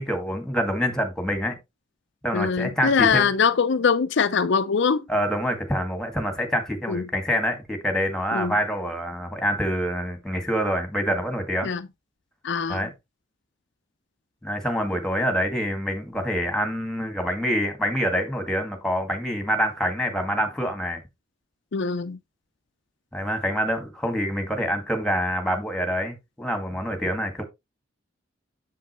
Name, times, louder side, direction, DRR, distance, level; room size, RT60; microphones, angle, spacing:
voice 1, 0.0-1.6 2.2-3.3 5.1-11.7 12.7-12.9 14.4-21.0 23.1-27.4, equal, 5° left, 1.9 m, -26 dB
voice 2, 2.3-5.0 6.9-7.0 8.3-8.5 11.6-11.9 12.4-12.9 21.7-22.2, left 6 dB, 65° left, 0.5 m, -22 dB
7.5 x 7.5 x 3.1 m
head